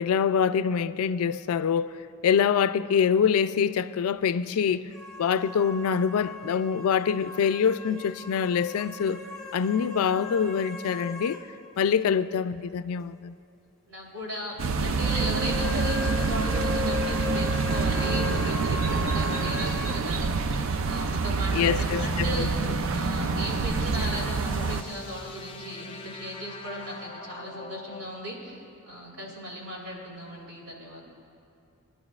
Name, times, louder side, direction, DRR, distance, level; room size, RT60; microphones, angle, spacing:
voice 1, 0.0-1.9 2.2-4.9 5.2-9.2 9.5-11.4 11.8-13.3 21.5-22.5, left 7 dB, 80° left, 15 dB, 0.3 m, -25 dB
sound 1, 4.9-11.5 11.7-11.8 14.9-20.0, left 3 dB, ahead, 1.1 m, -37 dB
voice 2, 13.9-31.1, equal, 90° right, -4 dB, 3.3 m, -37 dB
sound 2, 14.6-24.8, right 4 dB, 65° right, 0.4 m, -27 dB
sound 3, 21.9-28.1, left 1 dB, 25° left, 0.5 m, -39 dB
22.0 x 11.0 x 2.4 m, 2.6 s
head